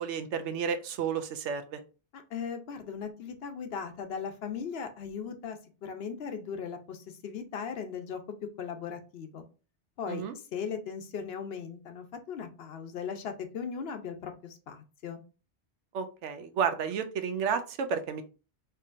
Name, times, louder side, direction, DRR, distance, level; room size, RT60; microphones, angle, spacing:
voice 1, 0.0-1.8 10.1-10.3 15.9-18.2, right 6 dB, 80° right, 9 dB, 0.9 m, -31 dB
voice 2, 2.1-8.2 8.6-9.4 10.0-10.2 10.5-15.2, left 6 dB, 65° left, 7 dB, 0.8 m, -38 dB
4.6 x 2.8 x 2.4 m, 0.34 s
omnidirectional pair, 1.2 m